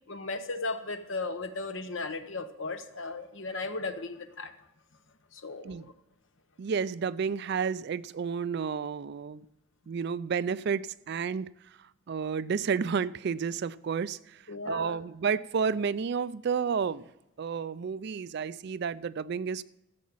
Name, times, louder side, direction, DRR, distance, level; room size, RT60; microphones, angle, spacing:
voice 1, 0.1-4.5 5.3-5.9 14.5-15.0, left 3 dB, 60° left, 9 dB, 1.0 m, -36 dB
voice 2, 6.6-9.5 9.9-11.8 12.1-17.1 17.4-19.6, right 6 dB, 50° right, 18 dB, 0.3 m, -31 dB
14.0 x 7.4 x 7.2 m, 0.86 s
head